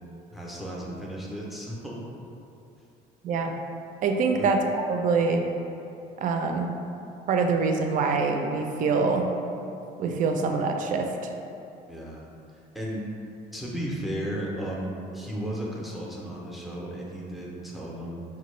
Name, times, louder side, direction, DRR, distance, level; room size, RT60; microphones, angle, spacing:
voice 1, 0.3-2.0 4.3-4.5 11.9-12.2 12.7-13.0 13.5-18.2, right 1 dB, ahead, -4 dB, 0.5 m, -34 dB
voice 2, 4.0-5.4 6.2-6.7 7.3-9.3 10.0-11.3, right 4 dB, 50° right, 4 dB, 0.4 m, -25 dB
4.2 x 2.1 x 3.1 m, 2.7 s
cardioid pair, 110°, 17 cm